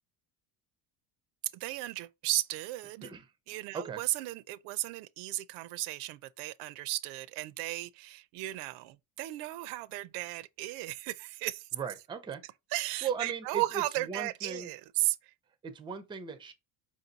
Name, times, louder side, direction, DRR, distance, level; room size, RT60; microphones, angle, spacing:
voice 1, 1.5-3.1 3.5-11.7 12.7-15.3, right 18 dB, 90° right, 0.5 m, -35 dB
voice 2, 11.7-12.4 13.0-13.6 14.1-14.7 15.6-16.5, right 6 dB, 15° right, 0.5 m, -37 dB
5.1 x 2.7 x 3.9 m
cardioid pair, 160°, 39 cm